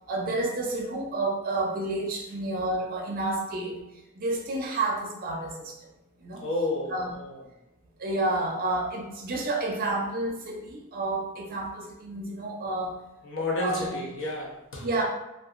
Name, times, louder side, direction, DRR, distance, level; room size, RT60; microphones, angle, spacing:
voice 1, 0.0-3.8 4.1-5.7 6.2-6.5 6.9-7.1 8.0-13.0 13.6-13.9 14.8-15.0, right 2 dB, 45° right, 0 dB, 0.5 m, -30 dB
voice 2, 6.4-7.4 13.2-14.9, left 2 dB, 65° left, -2 dB, 0.7 m, -31 dB
2.8 x 2.3 x 2.4 m, 0.93 s
head